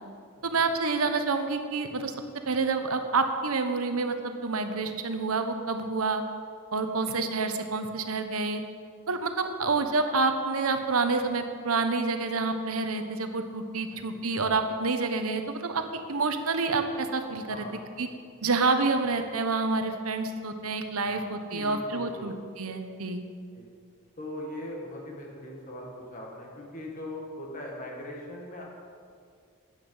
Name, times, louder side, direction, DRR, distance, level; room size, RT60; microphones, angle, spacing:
voice 1, 0.4-2.1 2.5-6.2 6.7-8.6 9.1-17.7 18.0-18.1 18.4-22.3 22.6-23.2, right 3 dB, 85° right, 7 dB, 1.0 m, -28 dB
voice 2, 13.9-14.2 17.5-17.8 18.4-18.5 21.0-22.3 23.5-23.7 24.2-28.6, left 1 dB, 35° left, -2 dB, 1.9 m, -40 dB
13.0 x 9.1 x 5.5 m, 2.2 s
head